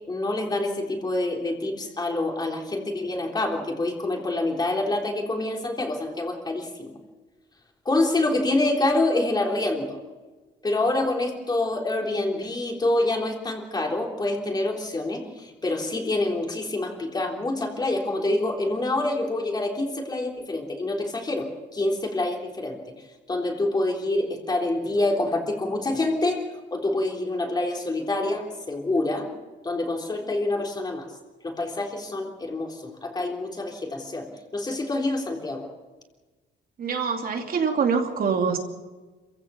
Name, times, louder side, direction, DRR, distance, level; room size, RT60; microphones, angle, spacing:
voice 1, 0.1-6.9 7.9-10.0 10.6-22.8 23.3-26.4 26.7-29.3 29.6-31.1 31.4-34.3 34.5-35.7, left 2 dB, 20° left, 1 dB, 3.7 m, -26 dB
voice 2, 36.8-38.6, right 5 dB, 50° right, 3 dB, 2.7 m, -24 dB
27.0 x 16.0 x 7.1 m, 1.3 s
cardioid pair, 145°, 19 cm